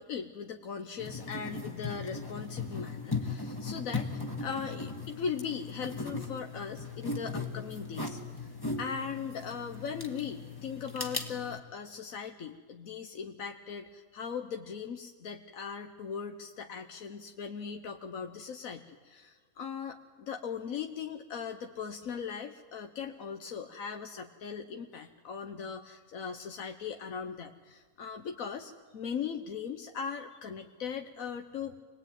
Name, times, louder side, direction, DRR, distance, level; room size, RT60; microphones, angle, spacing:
voice 1, 0.0-8.5 8.8-31.8, left 6 dB, 85° left, 5 dB, 1.4 m, -39 dB
sound 1, 1.0-11.6, left 3 dB, 15° left, 1.6 m, -38 dB
26.0 x 19.5 x 9.1 m, 1.5 s
omnidirectional pair, 1.4 m